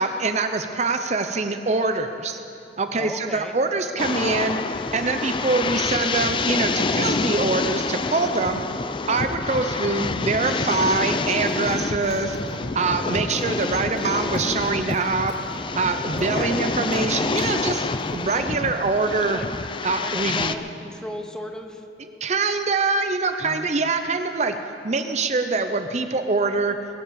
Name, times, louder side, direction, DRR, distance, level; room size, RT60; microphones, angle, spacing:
voice 1, 0.0-2.4 2.8-4.6 4.9-8.6 9.1-12.4 12.7-15.4 15.8-19.4 19.8-20.6 22.2-24.6 24.8-26.8, right 3 dB, 40° right, 8 dB, 0.6 m, -24 dB
voice 2, 3.0-3.6 9.4-9.8 13.3-13.7 16.2-16.6 19.3-19.5 20.0-21.9 23.4-23.7, equal, 5° left, 5 dB, 0.9 m, -36 dB
sound 1, 4.0-20.6, left 3 dB, 25° left, 0.4 m, -27 dB
sound 2, 11.5-12.9 13.4-14.0 14.3-16.4 16.7-17.0 17.4-18.2, equal, 75° left, 3.4 m, -41 dB
21.0 x 8.5 x 7.0 m, 2.7 s
head